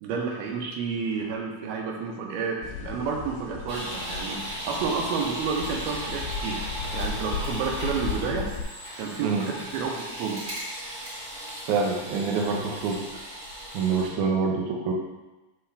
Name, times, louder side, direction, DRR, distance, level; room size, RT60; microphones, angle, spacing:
voice 1, 0.0-6.6 6.9-8.5 9.0-10.4, right 5 dB, 85° right, 1 dB, 2.7 m, -30 dB
sound 1, 2.6-8.6, left 6 dB, 90° left, 2.5 m, -35 dB
sound 2, 3.7-14.1, right 1 dB, 35° right, 2.3 m, -37 dB
voice 2, 9.2-9.5 11.7-13.0 13.7-14.9, right 5 dB, 70° right, 0 dB, 2.0 m, -26 dB
5.8 x 5.8 x 3.3 m, 1.1 s
omnidirectional pair, 4.3 m